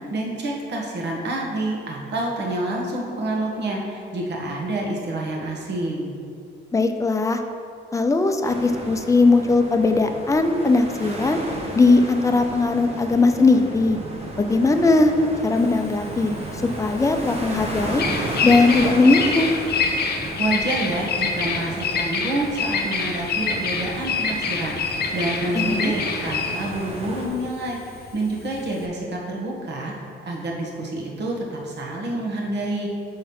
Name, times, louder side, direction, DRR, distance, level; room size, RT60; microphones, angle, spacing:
voice 1, 0.1-6.1 20.4-29.9 30.3-32.9, right 2 dB, 60° right, -1 dB, 1.4 m, -28 dB
voice 2, 6.7-7.4 7.9-11.4 11.7-14.0 14.4-15.1 15.4-16.4 16.6-18.1 18.4-19.6 25.5-25.9, left 3 dB, 15° left, 6 dB, 0.5 m, -19 dB
sound 1, 8.4-27.3, right 1 dB, 30° right, 1.2 m, -33 dB
Bird vocalization bird call bird song, 15.6-28.9, left 5 dB, 55° left, 0.7 m, -26 dB
5.9 x 4.1 x 5.4 m, 2.5 s
cardioid pair, 90°, 20 cm